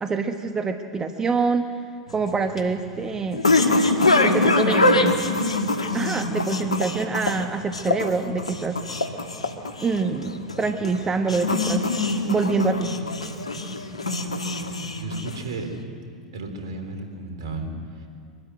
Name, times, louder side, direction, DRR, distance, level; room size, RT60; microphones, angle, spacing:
voice 1, 0.0-1.7 2.1-3.5 4.2-5.1 5.9-8.8 9.8-11.8 12.3-12.9, right 4 dB, 20° right, 6 dB, 1.1 m, -25 dB
sound 1, 2.1-15.7, left 2 dB, 90° left, 1.5 m, -24 dB
voice 2, 15.0-15.7 16.3-18.1, right 3 dB, 65° right, 4 dB, 3.8 m, -34 dB
23.5 x 13.0 x 9.7 m, 2.3 s
hypercardioid pair, 90°, 3 cm